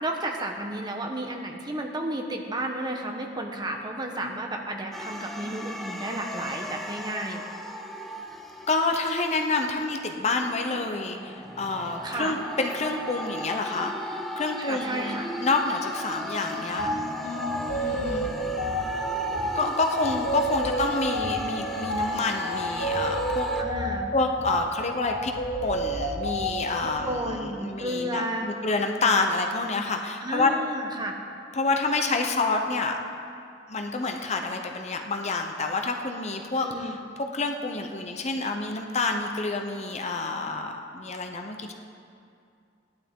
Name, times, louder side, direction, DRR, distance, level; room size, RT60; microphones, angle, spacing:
voice 1, 0.0-7.4 12.0-12.3 14.6-15.3 17.8-18.3 23.6-24.1 26.8-28.5 30.2-31.1 36.6-37.0, right 1 dB, 25° right, 2 dB, 1.1 m, -32 dB
sound 1, 4.9-9.3 9.9-23.6, equal, ahead, 0.6 m, -36 dB
voice 2, 8.7-16.9 17.2-18.3 19.5-23.5 24.1-25.3 25.6-30.5 31.5-33.0 33.7-41.7, left 3 dB, 40° left, 4 dB, 0.8 m, -28 dB
sound 2, 16.8-17.0 17.4-27.1, equal, 65° left, 1.4 m, -30 dB
16.5 x 11.5 x 3.7 m, 2.4 s
head